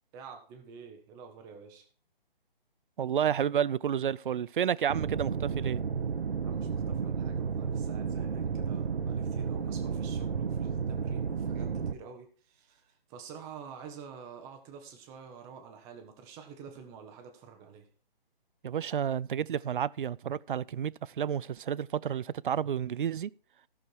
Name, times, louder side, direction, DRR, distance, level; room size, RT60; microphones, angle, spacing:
voice 1, 0.1-1.9 6.4-17.9, right 6 dB, 10° right, 0.8 m, -48 dB
voice 2, 3.0-5.8 18.6-23.3, right 9 dB, 60° right, 0.5 m, -30 dB
sound 1, 4.9-11.9, right 6 dB, 80° right, 1.0 m, -32 dB
14.5 x 6.5 x 4.6 m
hypercardioid pair, 155°, 29 cm